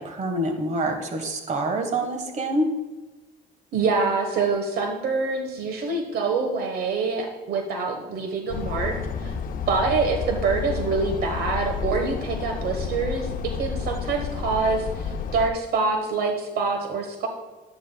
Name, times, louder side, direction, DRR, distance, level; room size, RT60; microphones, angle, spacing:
voice 1, 0.0-2.7, right 1 dB, 45° right, 5 dB, 1.5 m, -26 dB
voice 2, 3.7-9.4 9.7-17.3, right 4 dB, 65° right, 4 dB, 1.2 m, -25 dB
sound 1, 8.5-15.5, left 6 dB, 55° left, 0.7 m, -30 dB
11.0 x 10.5 x 2.3 m, 1.2 s
cardioid pair, 110°, 17 cm